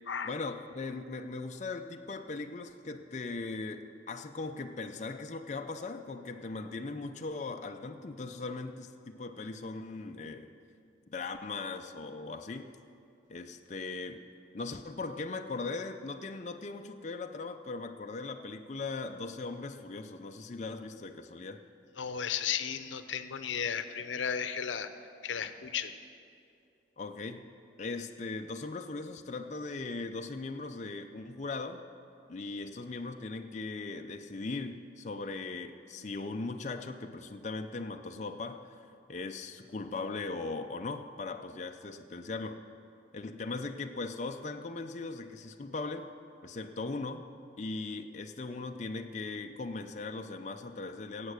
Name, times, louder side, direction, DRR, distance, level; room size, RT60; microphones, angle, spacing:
voice 1, 0.2-10.5 11.1-12.7 13.3-14.3 14.5-21.6 27.0-27.4 27.8-31.8 32.3-38.7 39.1-42.6 43.1-46.1 46.4-47.3 47.6-51.3, left 3 dB, 40° left, 5 dB, 0.5 m, -39 dB
voice 2, 22.0-24.9 25.2-25.9, left 7 dB, 90° left, 10 dB, 0.7 m, -34 dB
16.5 x 8.2 x 6.3 m, 2.5 s
head